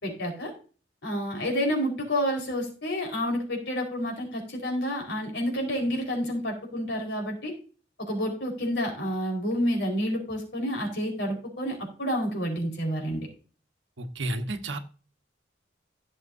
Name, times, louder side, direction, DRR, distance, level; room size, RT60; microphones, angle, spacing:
voice 1, 0.0-0.5 1.0-7.5 8.1-13.3, equal, 60° left, 1 dB, 4.7 m, -29 dB
voice 2, 14.0-14.8, right 2 dB, 70° right, 6 dB, 1.3 m, -31 dB
16.0 x 7.3 x 2.7 m, 0.37 s
head